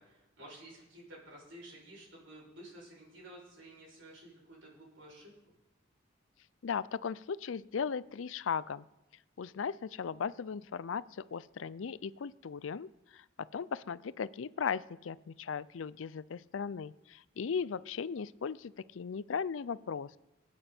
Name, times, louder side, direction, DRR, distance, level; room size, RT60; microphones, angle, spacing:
voice 1, 0.0-5.3, right 1 dB, 90° right, -3 dB, 7.1 m, -52 dB
voice 2, 6.6-8.9 9.4-13.2 13.5-20.2, left 6 dB, 75° left, 18 dB, 0.5 m, -37 dB
24.5 x 8.9 x 4.4 m, 0.96 s
head